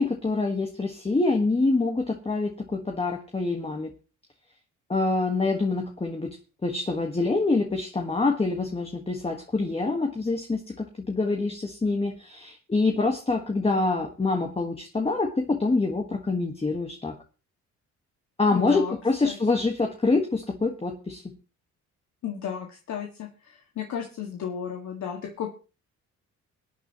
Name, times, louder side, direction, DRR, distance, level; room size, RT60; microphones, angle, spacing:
voice 1, 0.0-3.9 4.9-6.4 6.6-17.1 18.4-21.3, left 3 dB, 20° left, 3 dB, 1.6 m, -26 dB
voice 2, 18.5-18.9 19.2-19.4 22.2-25.5, left 8 dB, 70° left, 2 dB, 2.1 m, -34 dB
23.5 x 9.2 x 3.1 m, 0.35 s
cardioid pair, 90°, 30 cm